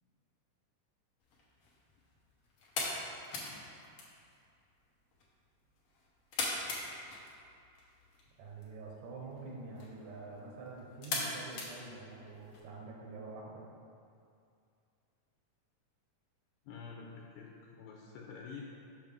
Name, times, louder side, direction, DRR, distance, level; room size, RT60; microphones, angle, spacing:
sound 1, 1.2-12.6, left 2 dB, 70° left, 1.3 m, -43 dB
voice 1, 8.4-13.6, right 3 dB, 80° right, -2 dB, 2.4 m, -46 dB
voice 2, 16.7-18.6, left 5 dB, 90° left, -2 dB, 2.2 m, -48 dB
6.4 x 5.9 x 3.5 m, 2.4 s
omnidirectional pair, 3.7 m